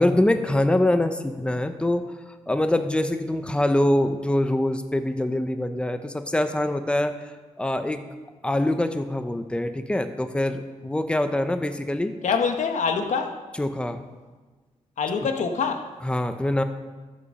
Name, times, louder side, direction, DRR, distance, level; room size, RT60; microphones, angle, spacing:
voice 1, 0.0-2.1 2.5-7.3 7.6-8.0 8.4-12.1 13.6-14.0 16.0-16.6, left 1 dB, 10° left, 8 dB, 0.8 m, -24 dB
voice 2, 12.2-13.3 15.0-15.9, left 5 dB, 80° left, 5 dB, 1.2 m, -25 dB
14.0 x 7.3 x 5.4 m, 1.3 s
cardioid pair, 100°, 12 cm